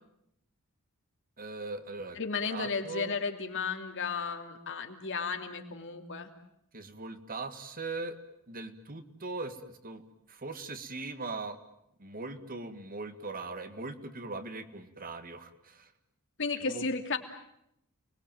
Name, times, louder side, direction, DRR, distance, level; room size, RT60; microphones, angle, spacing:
voice 1, 1.4-2.2 2.5-3.2 6.7-8.2 8.5-10.0 10.3-11.6 12.0-15.9 16.6-16.9, right 3 dB, 40° right, 10 dB, 1.9 m, -40 dB
voice 2, 2.1-6.3 16.4-17.2, left 4 dB, 55° left, 6 dB, 2.9 m, -34 dB
30.0 x 21.5 x 9.1 m, 0.78 s
head